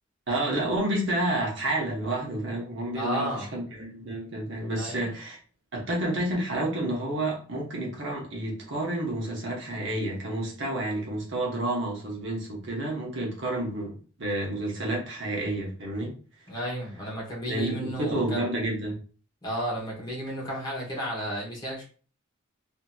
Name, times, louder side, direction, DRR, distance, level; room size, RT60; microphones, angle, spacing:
voice 1, 0.3-5.4 5.7-16.2 17.5-18.9, right 1 dB, 60° right, -2 dB, 0.9 m, -30 dB
voice 2, 2.9-3.5 4.7-5.1 16.5-18.4 19.4-21.8, equal, 20° left, -4 dB, 1.0 m, -33 dB
2.7 x 2.6 x 2.3 m, 0.39 s
head